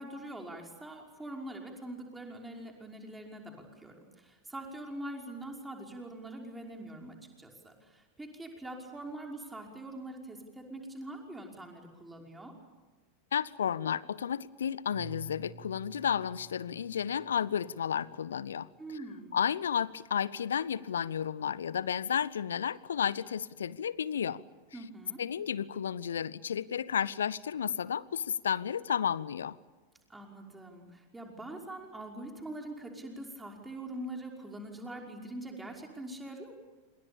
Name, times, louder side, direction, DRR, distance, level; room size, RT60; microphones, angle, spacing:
voice 1, 0.0-12.5 18.8-19.3 24.7-25.2 30.1-36.6, right 1 dB, 10° right, 2 dB, 5.5 m, -43 dB
voice 2, 13.3-19.0 19.3-24.4 25.2-29.6, left 8 dB, 65° left, 21 dB, 0.9 m, -32 dB
Keyboard (musical), 14.9-18.0, right 3 dB, 80° right, 3.0 m, -52 dB
29.0 x 27.5 x 7.1 m, 1.3 s
figure-of-eight pair, 90°, 0 cm